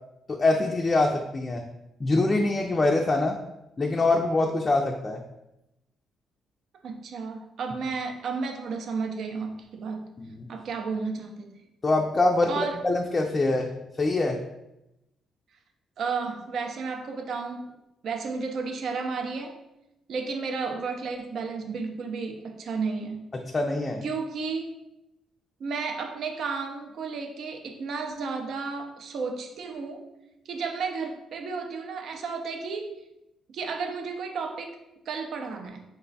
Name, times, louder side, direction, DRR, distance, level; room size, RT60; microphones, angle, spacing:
voice 1, 0.3-1.7 2.0-3.4 3.8-5.2 10.2-10.5 11.8-12.5 12.8-13.7 14.0-14.4 23.3-24.0, left 2 dB, 30° left, 1 dB, 0.4 m, -24 dB
voice 2, 6.8-10.1 10.5-11.6 12.5-12.8 16.0-17.7 18.0-19.6 20.1-23.3 24.0-24.7 25.6-30.1 30.5-32.9 33.5-34.8 35.1-35.8, right 4 dB, 65° right, 5 dB, 0.5 m, -32 dB
3.9 x 2.2 x 3.9 m, 0.89 s
cardioid pair, 90°, 0 cm